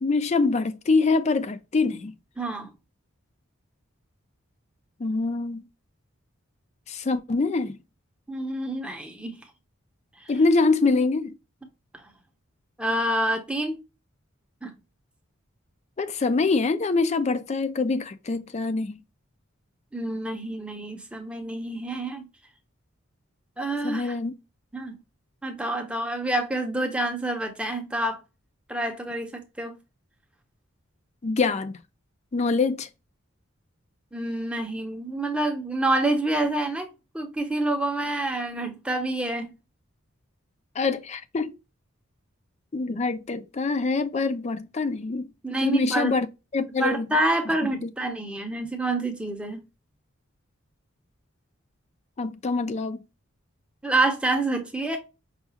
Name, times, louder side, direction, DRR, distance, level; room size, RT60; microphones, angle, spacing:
voice 1, 0.0-2.1 5.0-5.6 6.9-7.8 10.3-11.3 16.0-19.0 23.8-24.3 31.2-31.8 32.3-32.9 40.8-41.5 42.7-45.3 45.6-46.3 46.5-47.1 47.7-47.9 52.2-53.0, left 3 dB, 30° left, 0.4 m, -24 dB
voice 2, 2.4-2.7 8.3-9.4 10.2-10.3 11.9-12.0 12.8-13.8 14.6-14.7 19.9-22.3 23.6-24.1 24.7-25.0 25.4-28.2 28.7-29.8 34.1-36.9 37.1-39.5 45.4-46.2 46.8-49.6 53.8-55.0, right 1 dB, 5° right, 0.6 m, -27 dB
5.6 x 2.3 x 2.7 m
head